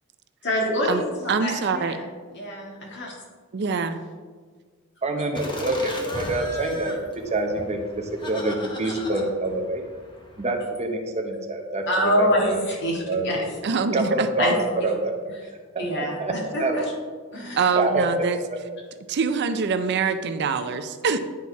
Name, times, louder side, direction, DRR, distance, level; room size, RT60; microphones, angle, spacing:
voice 1, 0.4-2.0 2.4-3.2 8.8-9.0 11.9-13.5 14.4-14.9 15.3-15.4 15.8-16.8 17.3-17.7, equal, 55° left, -2 dB, 2.0 m, -26 dB
voice 2, 1.3-2.0 3.5-4.0 13.6-14.3 17.6-18.4 19.1-21.2, right 5 dB, 55° right, 9 dB, 0.5 m, -24 dB
voice 3, 5.0-9.8 10.4-12.6 13.0-13.3 13.9-15.1 15.7-16.3 16.6-16.9 17.7-18.1, right 2 dB, 30° right, 3 dB, 0.9 m, -26 dB
Laughter, 5.3-10.5, left 1 dB, 25° left, 1.0 m, -37 dB
10.0 x 4.1 x 4.7 m, 1.5 s
head